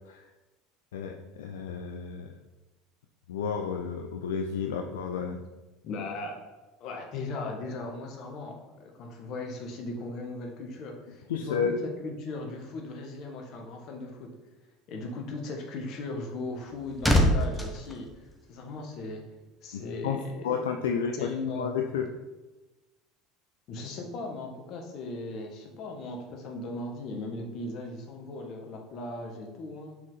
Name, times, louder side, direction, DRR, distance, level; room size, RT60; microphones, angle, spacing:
voice 1, 0.9-2.3 3.3-5.4 11.3-11.8 19.7-22.1, left 6 dB, 80° left, 4 dB, 0.4 m, -32 dB
voice 2, 5.8-6.3 6.8-14.3 14.9-18.1 18.5-19.2 19.6-20.6 21.1-22.0 23.7-29.9, left 2 dB, 55° left, 2 dB, 1.4 m, -38 dB
sound 1, 16.5-19.0 19.2-19.5, left 1 dB, 5° left, 1.2 m, -27 dB
5.8 x 4.8 x 4.1 m, 1.1 s
hypercardioid pair, 80°, 0 cm